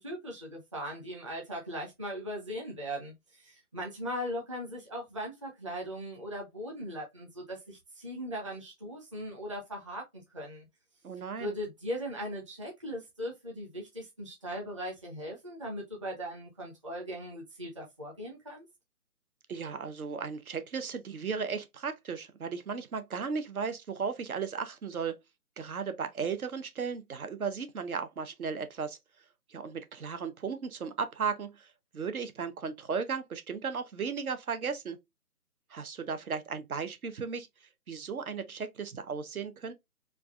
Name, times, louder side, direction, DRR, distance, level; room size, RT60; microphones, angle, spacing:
voice 1, 0.0-10.7 11.4-18.6, equal, 20° right, 0.6 m, -39 dB
voice 2, 11.0-11.6 19.5-25.1 25.6-29.0 29.5-35.0 35.7-37.5 37.9-39.7, right 5 dB, 70° right, 0.8 m, -35 dB
4.6 x 2.4 x 2.3 m
figure-of-eight pair, 160°, 45 cm